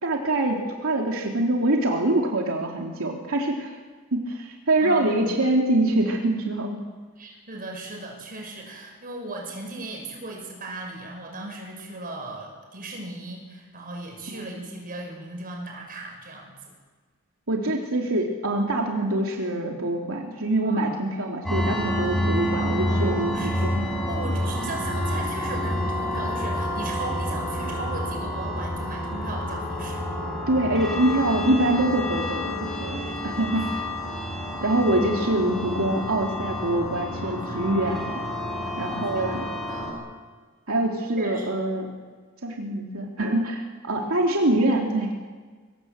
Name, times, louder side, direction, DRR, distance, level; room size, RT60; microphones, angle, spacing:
voice 1, 0.0-3.7 4.1-6.8 14.6-14.7 17.5-23.9 30.5-33.8 34.6-38.2 38.8-39.4 40.7-41.9 42.4-45.1, right 1 dB, 85° right, 0 dB, 2.8 m, -24 dB
voice 2, 4.8-5.4 7.2-16.5 20.6-21.1 22.5-30.0 33.0-33.7 37.2-37.9 38.6-39.9 41.2-41.5, right 2 dB, 45° right, 1 dB, 6.8 m, -37 dB
sound 1, 21.5-39.9, left 1 dB, ahead, 6.2 m, -29 dB
24.5 x 18.0 x 8.0 m, 1.5 s
head